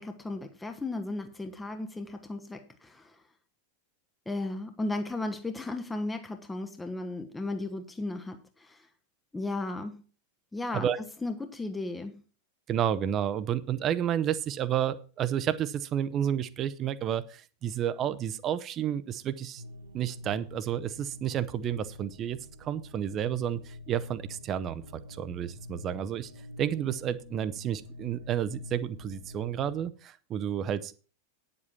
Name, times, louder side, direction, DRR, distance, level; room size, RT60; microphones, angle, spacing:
voice 1, 0.0-3.2 4.3-8.9 9.3-10.0 10.5-10.9 11.2-12.2, left 2 dB, 10° left, 1.0 m, -35 dB
voice 2, 12.7-19.6 19.9-26.3 26.6-30.9, right 10 dB, 30° right, 0.8 m, -31 dB
sound 1, 19.6-29.8, left 1 dB, 70° right, 2.0 m, -46 dB
9.6 x 7.7 x 5.9 m
figure-of-eight pair, 90°, 0 cm